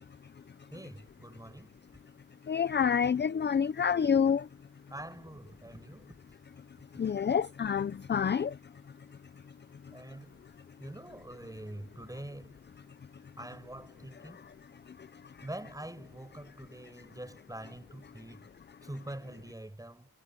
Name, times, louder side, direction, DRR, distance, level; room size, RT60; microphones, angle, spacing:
voice 1, 0.7-1.8 4.9-6.2 9.9-10.4 10.8-12.6 13.4-14.5 15.4-18.5 18.8-20.1, right 1 dB, 10° right, 6.5 m, -45 dB
voice 2, 2.5-4.5 6.9-8.6 14.2-14.4 15.0-15.5, left 7 dB, 30° left, 0.5 m, -28 dB
wide cardioid pair, 130°, 38 cm